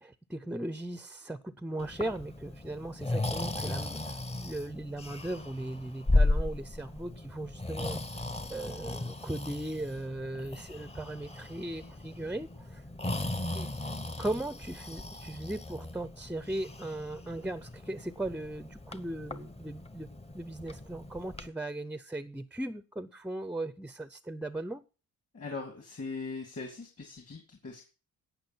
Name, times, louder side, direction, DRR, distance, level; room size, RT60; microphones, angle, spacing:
voice 1, 0.0-4.0 4.4-8.0 8.5-12.8 13.5-13.7 14.2-20.1 20.3-24.8, right 1 dB, 5° right, 0.5 m, -38 dB
Breathing, 1.8-21.5, left 2 dB, 15° left, 0.9 m, -36 dB
voice 2, 25.3-27.9, left 4 dB, 40° left, 2.6 m, -40 dB
17.5 x 6.1 x 4.4 m
cardioid pair, 105°, 36 cm